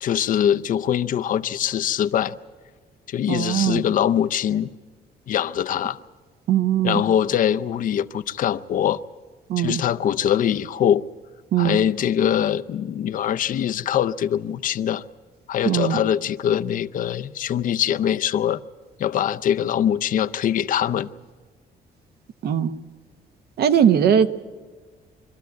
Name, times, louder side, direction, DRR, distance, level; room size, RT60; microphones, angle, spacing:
voice 1, 0.0-2.4 3.1-4.7 5.3-6.0 6.8-9.0 9.6-11.0 11.6-15.0 15.5-18.6 19.0-21.1, left 10 dB, 55° left, 0.5 m, -23 dB
voice 2, 3.3-3.8 6.5-7.0 9.5-9.8 11.5-11.8 15.6-16.0 22.4-22.7 23.6-24.3, right 9 dB, 75° right, 0.9 m, -20 dB
24.5 x 13.0 x 9.3 m
cardioid pair, 160°, 17 cm